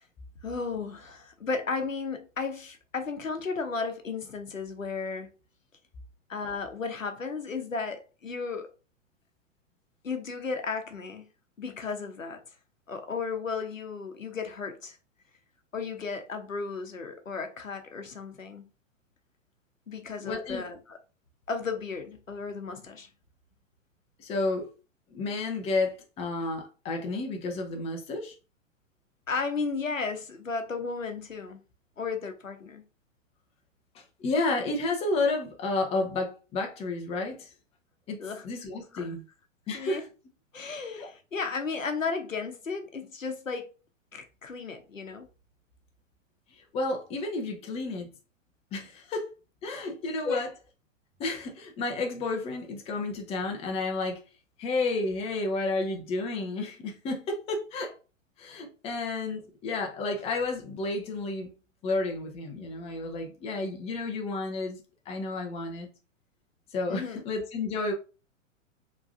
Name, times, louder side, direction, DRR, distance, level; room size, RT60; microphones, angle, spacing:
voice 1, 0.4-5.3 6.3-8.7 10.0-11.3 11.6-12.4 12.9-15.0 15.7-18.7 19.9-21.0 21.5-23.1 29.3-31.6 32.0-32.8 38.2-38.5 38.9-39.1 39.7-40.0 40.5-43.7 44.1-45.3 50.2-50.5 66.9-67.2, left 4 dB, 80° left, 0.8 m, -34 dB
voice 2, 20.2-20.6 24.2-24.7 25.1-28.3 33.9-37.5 38.1-38.2 38.4-39.2 39.7-40.1 41.0-41.1 46.5-48.1 48.7-49.3 49.6-50.5 51.2-54.2 54.6-57.9 58.4-61.5 61.8-64.8 65.1-65.9 66.7-67.9, left 3 dB, 15° left, 0.7 m, -31 dB
4.6 x 3.1 x 2.5 m
figure-of-eight pair, 105°, 39 cm